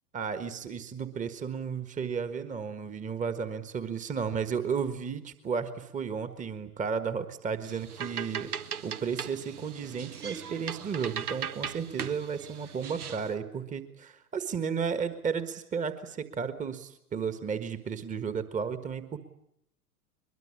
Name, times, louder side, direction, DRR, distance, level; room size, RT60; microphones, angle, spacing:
voice 1, 0.1-8.5 8.8-19.2, right 6 dB, 15° right, 11 dB, 1.6 m, -33 dB
sound 1, 7.6-13.3, right 7 dB, 70° right, 1.5 m, -38 dB
22.5 x 22.5 x 9.8 m, 0.75 s
figure-of-eight pair, 90°, 47 cm